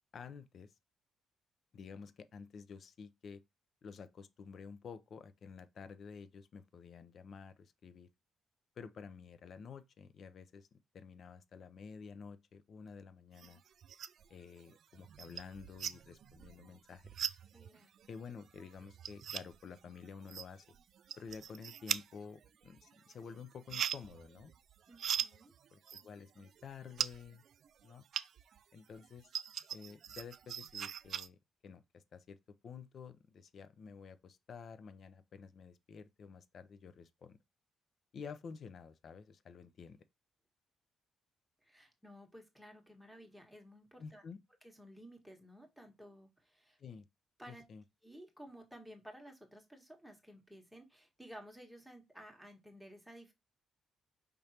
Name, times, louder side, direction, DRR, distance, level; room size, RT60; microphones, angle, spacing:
voice 1, 0.1-0.7 1.7-3.4 3.8-8.1 8.8-13.6 14.3-17.1 18.1-20.7 21.2-24.5 25.7-27.4 27.8-28.0 28.7-29.3 29.7-31.4 31.6-37.4 38.1-40.0 44.0-44.4 46.8-47.1 47.5-47.8, left 6 dB, 55° left, 0.6 m, -51 dB
sound 1, 13.4-14.3 14.7-28.6 28.9-31.3, right 9 dB, 65° right, 0.3 m, -41 dB
voice 2, 17.5-17.9 24.9-25.5 39.6-39.7 41.6-44.2 44.6-46.8 47.4-47.6 48.0-53.3, equal, ahead, 1.7 m, -55 dB
5.1 x 3.3 x 2.8 m
cardioid pair, 90°, 0 cm